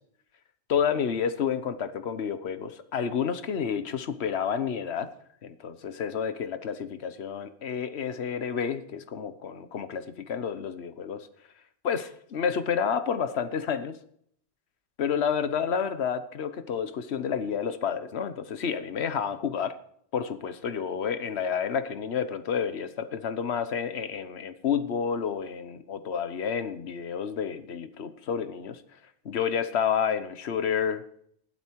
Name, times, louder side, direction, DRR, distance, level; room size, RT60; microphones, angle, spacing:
voice 1, 0.7-5.1 5.4-11.3 11.8-14.0 15.0-19.8 20.1-28.8 29.2-31.3, left 7 dB, 60° left, 11 dB, 1.3 m, -30 dB
15.0 x 12.0 x 4.6 m, 0.66 s
omnidirectional pair, 1.3 m